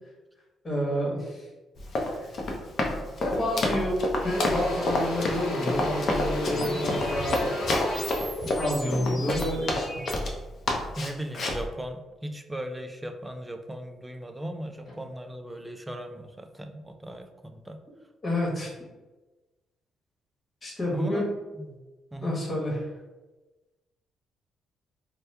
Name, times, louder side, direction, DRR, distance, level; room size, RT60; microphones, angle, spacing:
voice 1, 0.6-1.5 2.1-2.3 3.2-8.1 8.6-9.9 18.2-18.7 20.6-21.3 22.2-22.8, equal, 35° left, -3 dB, 1.1 m, -29 dB
Run, 1.8-10.4 10.7-11.6, left 2 dB, 55° left, 0.6 m, -28 dB
Engine / Drill, 3.3-3.5 3.8-10.0, left 2 dB, 85° left, 0.8 m, -34 dB
sound 1, 6.5-10.1, equal, 15° left, 0.7 m, -36 dB
voice 2, 11.0-17.8 20.9-21.3 21.6-21.8 22.1-22.4, right 1 dB, 10° right, 6 dB, 0.3 m, -38 dB
2.8 x 2.2 x 3.3 m, 1.2 s
cardioid pair, 90°, 0 cm